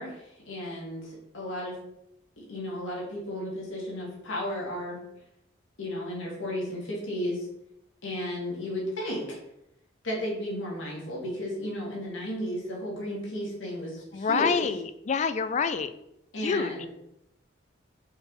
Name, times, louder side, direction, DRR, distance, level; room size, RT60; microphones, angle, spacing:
voice 1, 0.0-1.8 2.4-5.0 5.8-7.5 8.0-9.4 10.0-14.7 16.3-16.9, left 1 dB, 80° left, -3 dB, 2.2 m, -34 dB
voice 2, 14.1-15.9 16.4-16.7, left 5 dB, 35° left, 12 dB, 0.4 m, -27 dB
4.7 x 4.7 x 4.7 m, 0.82 s
head